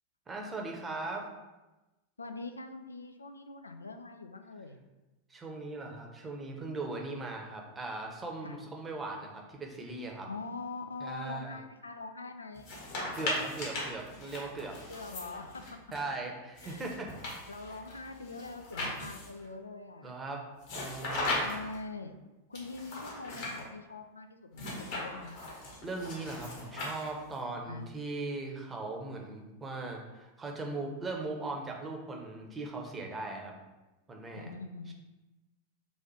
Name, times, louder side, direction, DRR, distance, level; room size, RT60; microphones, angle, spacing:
voice 1, 0.3-1.3 5.3-10.3 11.0-11.5 13.1-14.8 15.9-17.1 20.0-20.4 20.7-21.5 25.8-33.5 34.1-34.5 34.9-35.0, right 3 dB, 15° right, 0 dB, 0.8 m, -39 dB
voice 2, 2.2-4.8 8.4-8.6 10.3-12.7 14.9-15.8 16.6-16.8 17.5-20.1 21.4-22.2 22.5-25.5 27.7-27.9 34.3-34.9, left 3 dB, 80° left, 6 dB, 0.4 m, -43 dB
Overhead Projector Switching Transparencies, 12.6-16.0 16.6-19.5 20.6-21.8 22.6-23.6 24.5-27.4, left 2 dB, 50° left, 1.4 m, -38 dB
4.0 x 2.4 x 4.6 m, 1.1 s
figure-of-eight pair, 90°, 0 cm